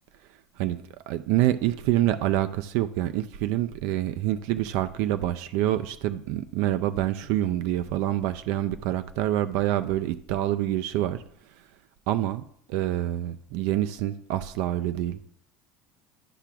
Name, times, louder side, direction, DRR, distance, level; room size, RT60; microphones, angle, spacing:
voice 1, 0.6-11.2 12.1-15.2, right 13 dB, 65° right, 0.4 m, -27 dB
11.5 x 5.8 x 2.3 m
cardioid pair, 165°, 6 cm